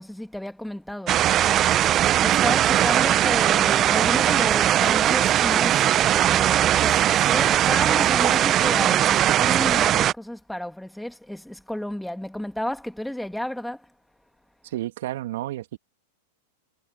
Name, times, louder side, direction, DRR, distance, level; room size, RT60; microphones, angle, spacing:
voice 1, 0.0-1.6 2.2-13.9, left 1 dB, ahead, 2.6 m, -32 dB
sound 1, 1.1-10.1, right 12 dB, 35° right, 0.6 m, -20 dB
voice 2, 14.6-15.8, right 14 dB, 65° right, 2.7 m, -31 dB
hypercardioid pair, 105°, 0 cm